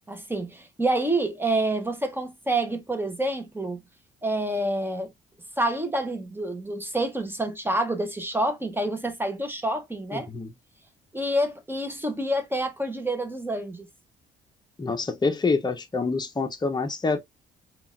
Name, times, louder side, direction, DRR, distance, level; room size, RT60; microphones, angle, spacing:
voice 1, 0.1-3.8 4.2-5.1 5.6-10.3 11.1-13.9, right 1 dB, 10° right, 0.8 m, -27 dB
voice 2, 10.1-10.5 14.8-17.2, left 4 dB, 20° left, 0.7 m, -26 dB
3.7 x 2.4 x 2.5 m
cardioid pair, 90°, 20 cm